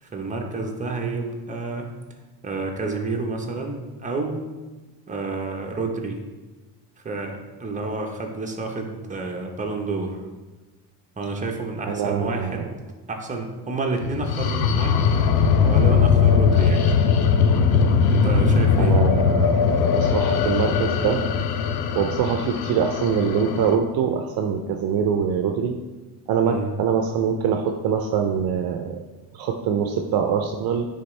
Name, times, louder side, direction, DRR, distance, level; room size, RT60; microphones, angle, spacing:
voice 1, 0.0-1.9 2.4-4.4 5.1-6.2 7.0-10.2 11.2-12.8 13.1-15.2 15.6-16.9 18.1-18.9 26.4-26.7, right 3 dB, 20° right, 1 dB, 1.1 m, -29 dB
voice 2, 11.8-12.6 18.8-21.2 22.0-25.8 26.3-29.0 29.3-30.9, right 7 dB, 60° right, 5 dB, 0.6 m, -24 dB
sound 1, 14.0-23.8, left 6 dB, 60° left, 0.7 m, -20 dB
9.4 x 3.6 x 3.3 m, 1.2 s
cardioid pair, 95°, 42 cm